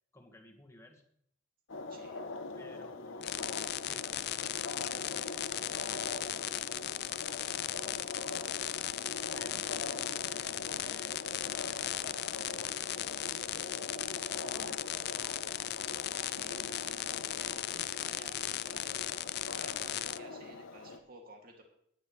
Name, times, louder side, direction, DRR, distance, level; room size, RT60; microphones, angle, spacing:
voice 1, 0.1-1.0 2.6-8.0 9.3-14.8, left 1 dB, 15° left, 2 dB, 1.7 m, -57 dB
sound 1, 1.7-21.0, left 3 dB, 85° left, 1.0 m, -43 dB
voice 2, 1.9-2.2 15.6-15.7 15.9-21.6, right 2 dB, 50° right, 1 dB, 2.6 m, -55 dB
sound 2, 3.2-20.2, left 13 dB, 55° left, 0.4 m, -37 dB
17.5 x 10.0 x 3.3 m, 0.69 s
head